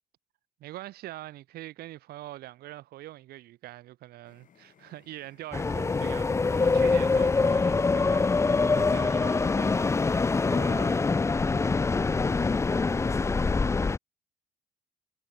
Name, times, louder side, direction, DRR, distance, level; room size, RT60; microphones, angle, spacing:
voice 1, 0.6-11.0, right 15 dB, 80° right, 2.6 m, -44 dB
sound 1, 4.2-10.4, left 9 dB, 55° left, 5.3 m, -62 dB
sound 2, 5.5-14.0, left 4 dB, 15° left, 0.5 m, -24 dB
cardioid pair, 80°, 16 cm